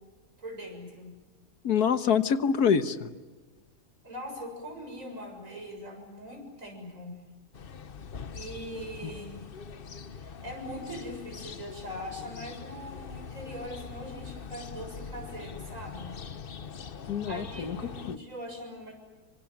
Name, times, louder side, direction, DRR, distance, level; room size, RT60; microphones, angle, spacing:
voice 1, 0.4-1.1 4.0-7.1 8.3-9.5 10.1-16.1 17.3-18.9, equal, 55° right, 3 dB, 7.5 m, -41 dB
voice 2, 1.6-3.1 17.1-17.8 18.0-18.2, left 7 dB, 85° left, 11 dB, 1.7 m, -25 dB
sound 1, 7.5-18.2, left 6 dB, 40° left, 1.0 m, -43 dB
27.0 x 25.0 x 7.5 m, 1.3 s
omnidirectional pair, 1.6 m